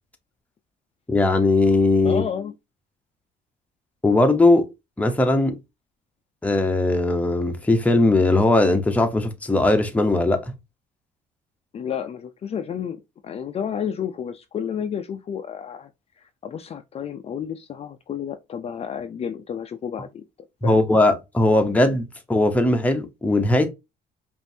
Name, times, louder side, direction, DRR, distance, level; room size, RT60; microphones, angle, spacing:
voice 1, 1.1-2.2 4.0-5.6 6.4-10.5 20.6-23.7, left 2 dB, 10° left, 0.8 m, -19 dB
voice 2, 2.0-2.5 11.7-15.9 16.2-20.2 20.6-20.8, left 8 dB, 35° left, 0.5 m, -31 dB
5.1 x 2.6 x 2.7 m
cardioid pair, 110°, 17 cm